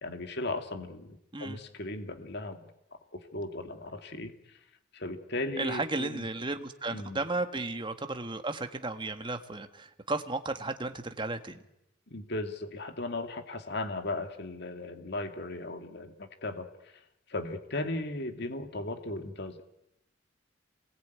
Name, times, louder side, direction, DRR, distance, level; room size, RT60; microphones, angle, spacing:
voice 1, 0.0-2.7 3.1-4.3 4.9-6.2 6.9-7.2 12.1-16.9 17.3-19.6, left 2 dB, 55° left, 7 dB, 2.4 m, -37 dB
voice 2, 5.6-11.6, right 2 dB, 25° right, 7 dB, 1.5 m, -34 dB
28.5 x 20.5 x 9.5 m, 0.85 s
head